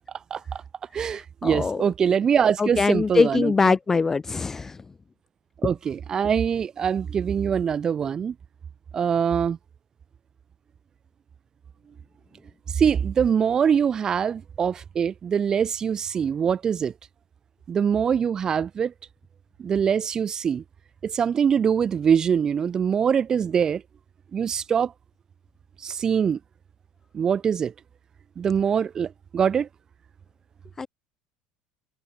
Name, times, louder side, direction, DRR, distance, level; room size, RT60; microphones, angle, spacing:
voice 1, 0.3-0.6 0.9-3.8 5.6-8.3 8.9-9.6 12.7-16.9 17.7-18.9 19.6-20.6 21.0-23.8 24.3-24.9 25.8-26.4 27.1-27.7 28.4-29.7, right 7 dB, 25° right, 1.8 m, -23 dB
voice 2, 1.4-1.8 2.6-4.7 30.8-30.9, left 4 dB, 15° left, 0.6 m, -22 dB
cardioid pair, 165°, 3 cm